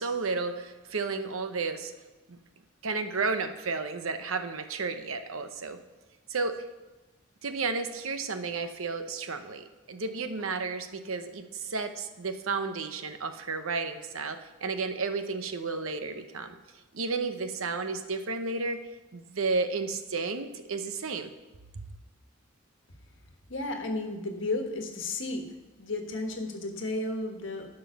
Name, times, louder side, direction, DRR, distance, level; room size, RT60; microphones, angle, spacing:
voice 1, 0.0-1.9 2.3-2.4 2.8-5.8 6.3-6.6 7.4-16.5 16.9-18.8 19.1-21.3, right 4 dB, 80° right, 8 dB, 0.9 m, -32 dB
voice 2, 23.5-25.5 25.8-27.7, left 2 dB, 65° left, 4 dB, 1.4 m, -33 dB
11.0 x 5.6 x 7.0 m, 1.1 s
head